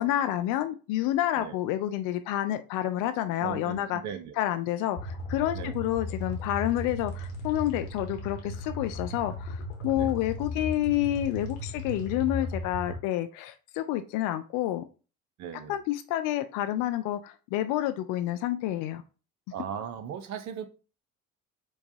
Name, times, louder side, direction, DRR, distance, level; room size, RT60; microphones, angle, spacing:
voice 1, 0.0-4.0 4.4-14.8 15.7-19.0, left 13 dB, 50° left, 0.5 m, -29 dB
voice 2, 3.4-4.4 5.5-5.8 9.9-10.1 15.4-15.8 19.5-20.7, right 8 dB, 40° right, 0.7 m, -38 dB
sound 1, 5.0-13.0, left 1 dB, 65° left, 1.1 m, -36 dB
4.6 x 2.2 x 2.7 m
figure-of-eight pair, 55°, 43 cm